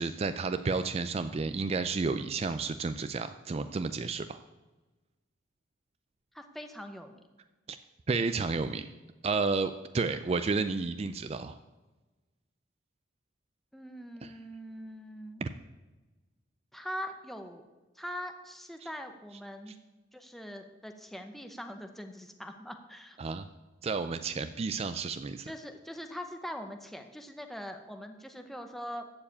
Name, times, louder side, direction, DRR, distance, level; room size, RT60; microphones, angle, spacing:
voice 1, 0.0-4.4 7.7-7.8 8.1-8.9 9.2-11.6 14.2-14.3 15.4-15.5 23.2-23.5 23.8-25.5, right 4 dB, 30° right, 10 dB, 0.3 m, -31 dB
voice 2, 6.3-7.2 13.7-15.4 16.7-17.6 17.9-19.7 20.1-23.2 25.4-29.1, equal, ahead, 6 dB, 0.7 m, -42 dB
14.0 x 4.8 x 8.6 m, 1.2 s
head